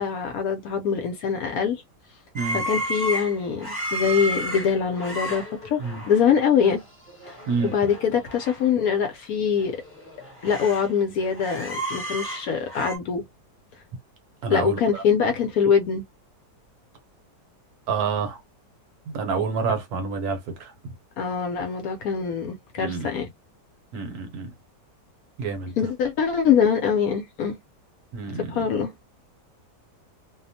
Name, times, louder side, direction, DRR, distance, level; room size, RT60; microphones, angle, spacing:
voice 1, 0.0-1.8 2.5-6.8 7.6-9.7 10.4-13.2 14.5-16.0 21.2-23.3 25.8-27.6 28.5-28.9, left 7 dB, 70° left, 0.9 m, -23 dB
sound 1, 2.4-6.2 6.6-6.8 7.1-8.6 8.9-9.0 9.6-10.9 11.2-13.0, right 1 dB, 10° left, 0.7 m, -32 dB
voice 2, 14.4-15.0 17.9-18.4 19.1-20.7 22.8-23.1 23.9-24.5 25.4-25.7 28.1-28.6, right 5 dB, 70° right, 1.1 m, -28 dB
2.8 x 2.0 x 2.6 m
omnidirectional pair, 1.8 m